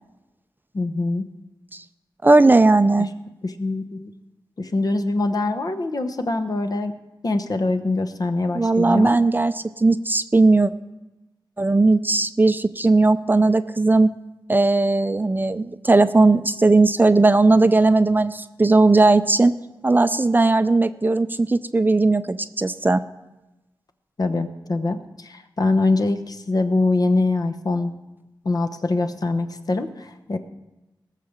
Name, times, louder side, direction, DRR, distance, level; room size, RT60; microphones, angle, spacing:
voice 1, 0.7-1.3 3.4-4.1 4.6-6.9 7.2-9.2 24.2-27.9 28.4-30.4, left 2 dB, 50° left, 7 dB, 1.0 m, -23 dB
voice 2, 2.2-3.1 8.5-10.7 11.6-14.1 14.5-19.5 19.8-23.0, right 3 dB, 25° right, 12 dB, 0.5 m, -17 dB
18.0 x 6.7 x 7.2 m, 1.0 s
wide cardioid pair, 105°, 8 cm